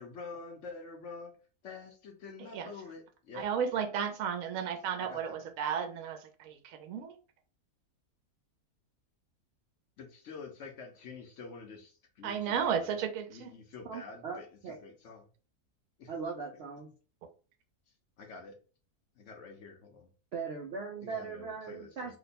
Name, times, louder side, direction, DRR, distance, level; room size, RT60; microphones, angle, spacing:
voice 1, 0.0-1.3 1.6-3.8 5.0-5.5 10.0-13.0 13.3-15.3 16.0-16.1 18.2-18.6 19.2-20.1 21.0-22.2, left 4 dB, 60° left, 3 dB, 0.8 m, -47 dB
voice 2, 3.4-7.1 12.2-13.5, right 7 dB, 70° right, 6 dB, 1.0 m, -33 dB
voice 3, 13.9-14.8 16.1-16.9 20.3-22.2, right 5 dB, 85° right, 1 dB, 0.5 m, -39 dB
2.9 x 2.1 x 4.0 m, 0.37 s
omnidirectional pair, 1.7 m